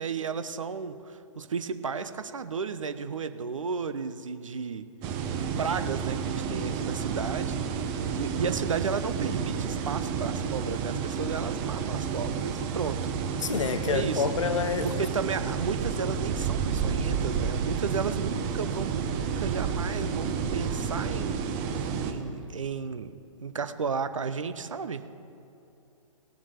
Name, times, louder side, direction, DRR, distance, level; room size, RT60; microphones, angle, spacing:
voice 1, 0.0-4.9 5.4-7.6 8.1-13.1 13.8-14.2 14.8-25.2, right 5 dB, 70° right, 11 dB, 0.8 m, -33 dB
sound 1, 5.0-22.1, right 6 dB, 25° right, 0.9 m, -30 dB
sound 2, 7.9-22.5, right 1 dB, ahead, 1.4 m, -49 dB
voice 2, 13.4-15.1, left 6 dB, 65° left, 13 dB, 0.7 m, -28 dB
18.0 x 7.2 x 5.0 m, 2.8 s
figure-of-eight pair, 120°, 17 cm